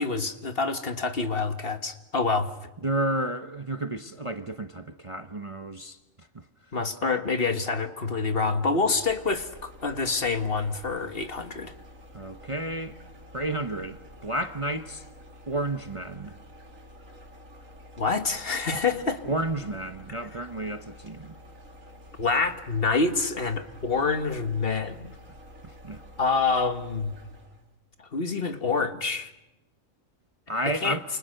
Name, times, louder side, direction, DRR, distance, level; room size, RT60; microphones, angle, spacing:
voice 1, 0.0-2.5 6.7-11.7 18.0-19.2 22.2-25.1 26.2-27.1 28.0-29.3 30.8-31.0, left 4 dB, 45° left, 1.7 m, -27 dB
voice 2, 2.8-6.4 12.1-13.0 13.3-15.0 15.5-16.4 19.2-21.4 25.6-26.0 30.5-31.0, right 1 dB, 25° right, 0.9 m, -31 dB
sound 1, 8.8-27.7, left 1 dB, 75° right, 3.2 m, -49 dB
29.0 x 28.5 x 6.6 m
omnidirectional pair, 1.4 m